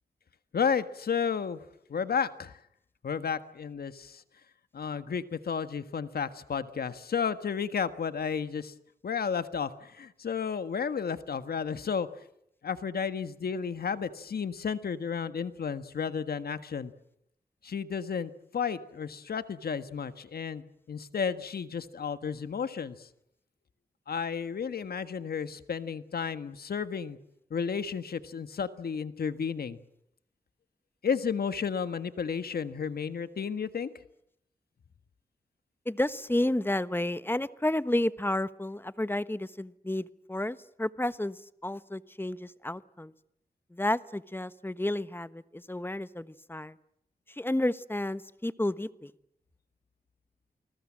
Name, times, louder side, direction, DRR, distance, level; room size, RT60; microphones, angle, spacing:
voice 1, 0.5-1.6 1.9-2.6 3.0-4.2 4.7-8.7 9.0-12.1 12.6-16.9 17.6-23.1 24.1-27.2 27.5-29.8 31.0-33.9, left 6 dB, 75° left, 11 dB, 1.6 m, -32 dB
voice 2, 35.8-43.1 43.7-46.8 47.3-49.1, left 1 dB, 15° left, 14 dB, 1.3 m, -31 dB
29.0 x 21.0 x 7.5 m, 0.76 s
cardioid pair, 60°, 16 cm